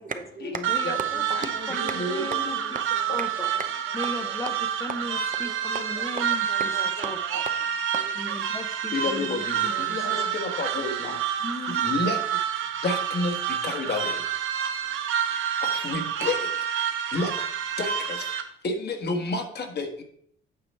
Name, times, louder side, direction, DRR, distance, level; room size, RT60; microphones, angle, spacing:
voice 1, 0.0-0.6 1.0-2.4 2.7-4.4 5.1-8.4 9.7-10.3, right 5 dB, 40° right, 8 dB, 0.8 m, -38 dB
sound 1, 0.6-18.4, right 9 dB, 85° right, 0.9 m, -28 dB
voice 2, 0.7-1.2 1.7-2.6 3.1-3.5 3.9-4.5 4.8-6.5 7.0-7.4 8.2-10.3 11.4-12.2, left 2 dB, 15° left, 6 dB, 0.7 m, -36 dB
voice 3, 8.9-9.4 9.9-10.2 10.6-11.1 11.9-12.2 12.8-13.3 13.6-14.1 15.8-16.3 17.1-17.3 17.8-17.9 18.6-20.0, left 3 dB, 55° left, 4 dB, 1.4 m, -28 dB
8.7 x 4.9 x 4.3 m, 0.66 s
cardioid pair, 90°, 20 cm